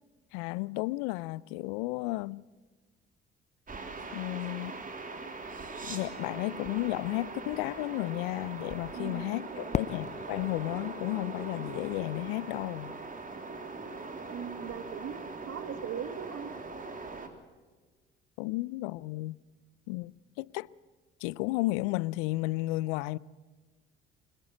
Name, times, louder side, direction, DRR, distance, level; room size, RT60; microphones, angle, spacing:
voice 1, 0.3-2.4 4.1-4.8 5.9-12.9 18.4-19.4 19.9-20.7 21.2-23.2, left 20 dB, 70° left, 0.6 m, -33 dB
sound 1, 3.7-17.3, right 3 dB, 30° right, 3.3 m, -41 dB
voice 2, 8.9-9.8 14.3-15.2 15.4-16.5, right 8 dB, 55° right, 2.1 m, -40 dB
Fireworks, 9.7-12.6, left 7 dB, 25° left, 0.5 m, -38 dB
24.5 x 14.5 x 8.0 m
hypercardioid pair, 55°, 29 cm